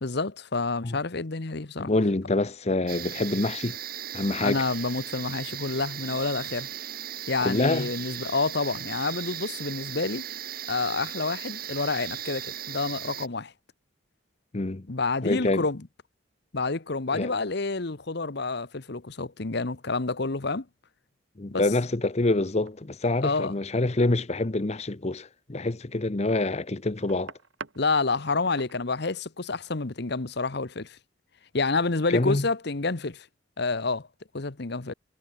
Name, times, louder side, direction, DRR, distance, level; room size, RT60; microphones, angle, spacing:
voice 1, 0.0-1.9 4.4-6.7 7.3-10.2 10.7-13.5 14.9-15.8 16.5-20.6 21.5-21.6 23.2-23.5 27.8-31.0 31.5-33.3 33.6-34.1 34.3-34.9, left 3 dB, 60° left, 1.1 m, -28 dB
voice 2, 1.8-3.8 4.1-4.6 7.4-7.9 14.5-14.9 15.2-15.7 17.1-17.3 21.4-27.3 32.1-32.5 34.9-35.0, left 2 dB, 35° left, 0.8 m, -26 dB
sound 1, 2.9-13.3, right 11 dB, 50° right, 1.2 m, -37 dB
sound 2, 22.1-22.3 22.7-23.1 24.6-25.2 25.9-27.9 28.2-28.8, right 4 dB, 75° right, 2.4 m, -44 dB
head